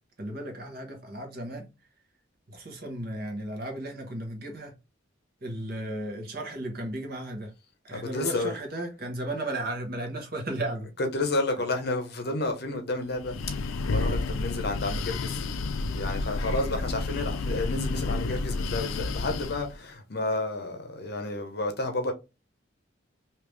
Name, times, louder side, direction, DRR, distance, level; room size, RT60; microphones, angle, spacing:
voice 1, 0.2-1.7 2.5-4.7 5.4-7.5 7.8-10.9, right 1 dB, 50° right, 1.1 m, -35 dB
voice 2, 7.9-8.5 11.0-15.4 15.9-22.1, left 2 dB, 55° left, 0.7 m, -31 dB
Breathing, 13.1-19.8, left 3 dB, 90° left, 0.4 m, -30 dB
3.4 x 2.8 x 3.2 m
head